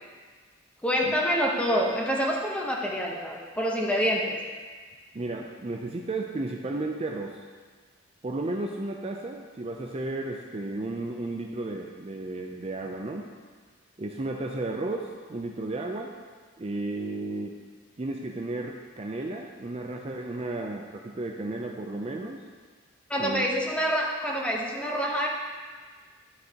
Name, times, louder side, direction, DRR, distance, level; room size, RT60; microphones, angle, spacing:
voice 1, 0.8-4.4 23.1-25.3, equal, 5° left, -2 dB, 1.0 m, -26 dB
voice 2, 5.1-7.4 8.2-13.3 14.0-16.1 16.6-17.6 18.0-22.4 23.2-23.5, right 2 dB, 30° right, 1 dB, 0.5 m, -33 dB
11.0 x 6.5 x 2.9 m, 1.5 s
head